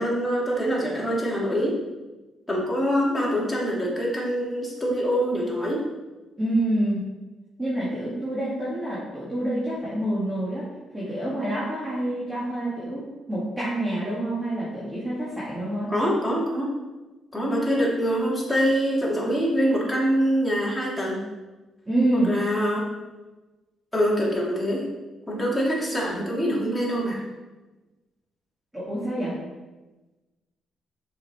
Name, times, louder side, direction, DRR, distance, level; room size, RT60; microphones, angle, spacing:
voice 1, 0.0-1.8 2.5-5.8 15.9-16.7 17.3-21.2 22.1-22.9 23.9-24.9 25.3-27.2, equal, 10° left, -4 dB, 2.6 m, -24 dB
voice 2, 6.4-7.0 7.6-10.7 10.9-15.9 21.9-22.3 28.7-29.4, right 1 dB, 15° right, -8 dB, 2.3 m, -27 dB
6.9 x 5.8 x 4.4 m, 1.2 s
cardioid pair, 90°, 0 cm